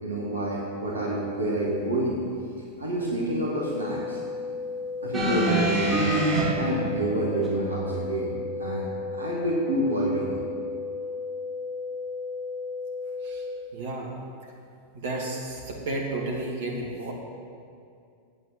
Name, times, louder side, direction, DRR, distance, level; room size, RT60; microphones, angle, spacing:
voice 1, 0.0-2.2 2.8-4.2 5.0-6.1 6.6-8.3 8.6-10.4, right 1 dB, 75° right, -4 dB, 1.8 m, -28 dB
sound 1, 3.5-13.5, left 4 dB, 60° left, 3.4 m, -34 dB
sound 2, 5.1-6.4 7.4-7.5, right 2 dB, 15° right, 3.3 m, -24 dB
voice 2, 13.7-14.1 14.4-14.5 14.9-17.1, right 2 dB, 55° right, -1 dB, 2.2 m, -32 dB
9.0 x 8.7 x 7.4 m, 2.4 s
figure-of-eight pair, 90°, 0 cm